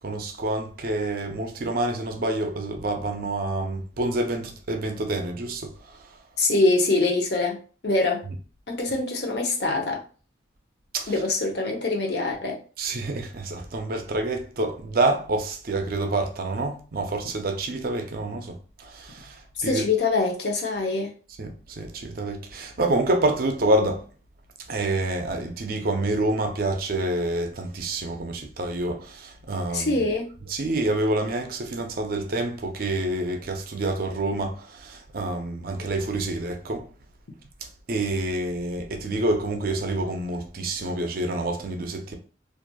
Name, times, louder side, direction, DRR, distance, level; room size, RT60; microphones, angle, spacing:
voice 1, 0.0-6.1 10.9-11.1 12.8-19.4 19.6-19.8 21.4-24.0 24.7-30.0 30.5-36.9 37.9-42.2, right 2 dB, 50° right, 0.5 m, -27 dB
voice 2, 6.4-8.2 8.7-10.0 11.1-12.6 19.6-21.1 29.7-30.3, left 3 dB, 60° left, 0.7 m, -24 dB
2.9 x 2.5 x 2.2 m
head